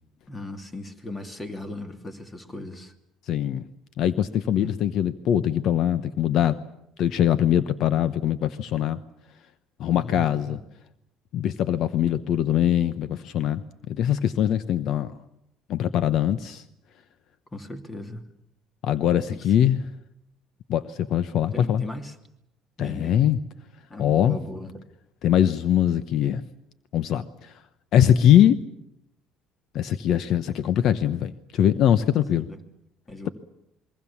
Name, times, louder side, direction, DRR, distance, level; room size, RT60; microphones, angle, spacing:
voice 1, 0.3-2.9 4.6-4.8 9.9-10.6 17.5-18.3 19.3-19.5 21.5-22.2 22.8-23.3 23.9-24.8 32.3-32.6 33.1-33.3, left 2 dB, 20° left, 2.8 m, -37 dB
voice 2, 3.3-3.6 4.0-6.6 7.0-9.0 9.8-10.6 11.3-13.6 13.9-15.1 15.7-16.6 18.8-19.8 20.7-21.8 22.8-23.4 24.0-24.4 25.2-26.4 26.9-27.5 27.9-28.6 29.7-32.4, left 10 dB, 60° left, 0.9 m, -22 dB
27.0 x 22.5 x 7.2 m
cardioid pair, 105°, 0 cm